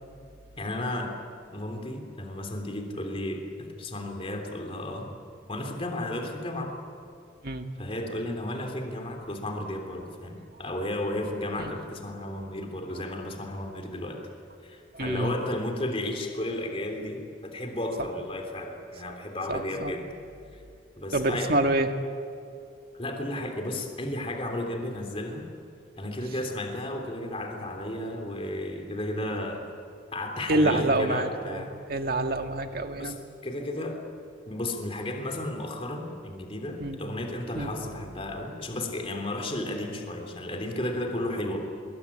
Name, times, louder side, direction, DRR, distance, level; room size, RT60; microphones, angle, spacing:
voice 1, 0.6-1.1 1.5-5.1 5.5-6.8 7.8-14.2 14.6-20.0 20.5-20.6 20.9-21.5 22.9-25.5 26.0-29.6 30.1-31.7 33.0-33.2 33.4-34.0 34.5-41.6, left 1 dB, 30° left, 3 dB, 3.4 m, -33 dB
voice 2, 14.9-15.3 19.1-19.2 19.5-19.9 21.1-21.9 30.5-33.2 36.8-37.0 37.6-37.7, right 2 dB, 55° right, 5 dB, 1.9 m, -27 dB
25.0 x 22.0 x 9.9 m, 2.5 s
head